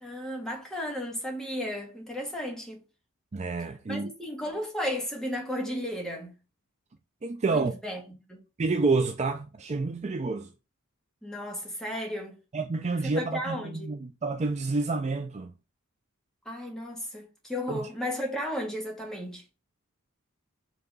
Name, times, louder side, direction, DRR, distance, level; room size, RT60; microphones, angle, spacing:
voice 1, 0.0-2.8 3.9-6.3 7.5-8.0 8.3-8.4 11.2-12.4 13.0-13.9 16.5-19.4, equal, 5° left, 1.9 m, -34 dB
voice 2, 3.3-4.1 7.2-7.7 8.6-10.5 12.5-15.5 17.7-17.9, right 3 dB, 30° right, 0.4 m, -29 dB
5.8 x 3.5 x 5.4 m
head